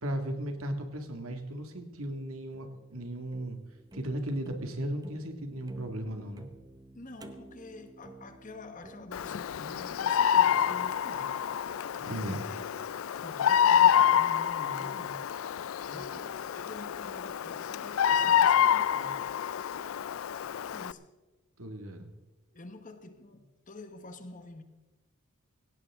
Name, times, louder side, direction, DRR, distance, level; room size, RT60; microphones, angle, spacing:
voice 1, 0.0-3.6 3.9-6.5 12.0-12.5 21.6-22.1, right 1 dB, 75° right, 2.0 m, -36 dB
sound 1, 2.1-13.3, right 2 dB, 20° right, 0.8 m, -54 dB
voice 2, 6.9-11.4 12.2-15.3 15.8-19.3 20.7-21.1 22.5-24.6, left 2 dB, 40° left, 1.3 m, -47 dB
Bird vocalization bird call bird song, 9.1-20.9, left 9 dB, 70° left, 0.4 m, -27 dB
17.5 x 16.5 x 3.6 m
head